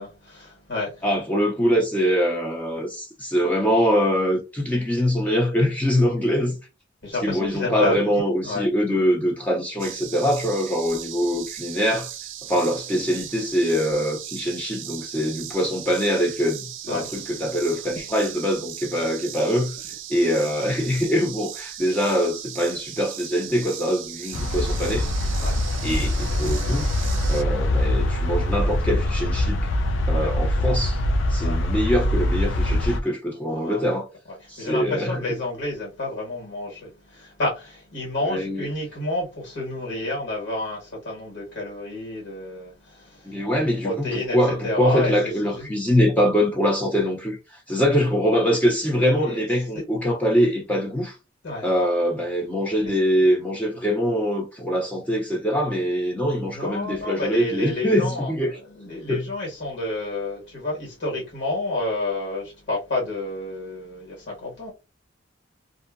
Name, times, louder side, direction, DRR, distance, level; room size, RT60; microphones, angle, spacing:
voice 1, 0.0-1.0 7.0-8.7 16.9-17.1 25.4-25.6 30.2-30.3 31.4-31.6 33.5-33.8 34.4-45.1 45.4-45.7 49.0-49.4 49.7-49.8 51.4-51.7 52.8-52.9 56.4-58.3 58.7-64.7, left 2 dB, 65° left, 1.5 m, -30 dB
voice 2, 1.0-6.6 7.2-12.1 12.5-25.1 25.8-26.9 27.3-29.7 30.1-31.0 31.3-34.1 34.5-35.2 38.2-38.7 43.3-47.4 47.7-51.2 51.6-58.6 59.1-59.2, equal, 10° left, 0.5 m, -23 dB
sound 1, 9.8-27.4, right 11 dB, 85° right, 0.5 m, -38 dB
sound 2, 24.3-33.0, left 1 dB, 90° left, 0.4 m, -23 dB
2.6 x 2.6 x 2.4 m
head